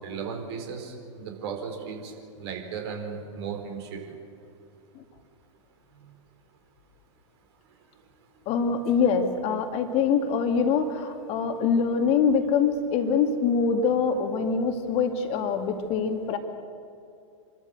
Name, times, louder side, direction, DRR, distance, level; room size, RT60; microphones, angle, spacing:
voice 1, 0.0-2.1 2.4-4.2, right 6 dB, 55° right, 3 dB, 4.5 m, -36 dB
voice 2, 8.5-16.4, left 6 dB, 35° left, 6 dB, 2.1 m, -24 dB
27.0 x 13.0 x 8.0 m, 2.5 s
figure-of-eight pair, 100°, 17 cm